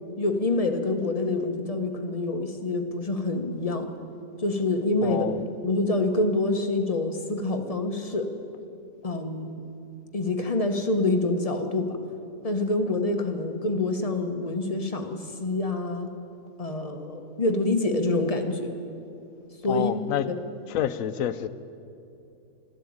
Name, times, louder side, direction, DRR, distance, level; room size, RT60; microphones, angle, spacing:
voice 1, 0.2-3.9 4.4-5.3 5.6-8.3 9.0-9.6 10.1-12.0 12.4-16.1 16.6-18.7 19.6-19.9 20.2-20.3, left 2 dB, 30° left, 5 dB, 1.1 m, -26 dB
voice 2, 5.0-5.4 19.7-20.3 20.7-21.5, left 10 dB, 80° left, 13 dB, 1.1 m, -28 dB
13.0 x 12.5 x 8.7 m, 2.6 s
omnidirectional pair, 1.4 m